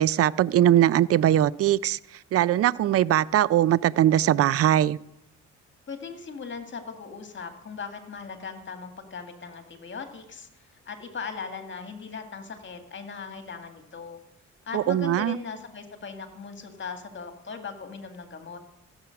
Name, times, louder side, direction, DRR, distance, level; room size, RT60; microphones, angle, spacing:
voice 1, 0.0-2.0 2.3-5.0 14.7-15.4, right 12 dB, 50° right, 0.4 m, -21 dB
voice 2, 5.9-14.2 14.7-18.6, left 5 dB, 40° left, 2.0 m, -39 dB
15.5 x 7.3 x 5.8 m
cardioid pair, 90°, 30 cm